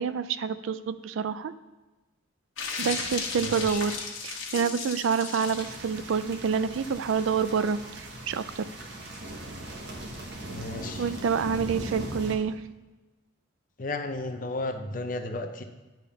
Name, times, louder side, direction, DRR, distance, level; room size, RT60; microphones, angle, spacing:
voice 1, 0.0-1.5 2.8-4.0 4.2-8.7 11.0-12.5, right 6 dB, 75° right, 13 dB, 0.4 m, -28 dB
sound 1, 2.6-5.8, left 5 dB, 80° left, 1.3 m, -35 dB
voice 2, 3.4-3.8 10.5-11.1 13.8-15.6, left 2 dB, 40° left, 7 dB, 0.6 m, -34 dB
Marimba xylophone, 4.5-6.3, left 3 dB, 55° left, 1.0 m, -53 dB
sound 2, 5.4-12.3, right 1 dB, 55° right, 1.2 m, -39 dB
10.5 x 3.5 x 5.6 m, 1.2 s
head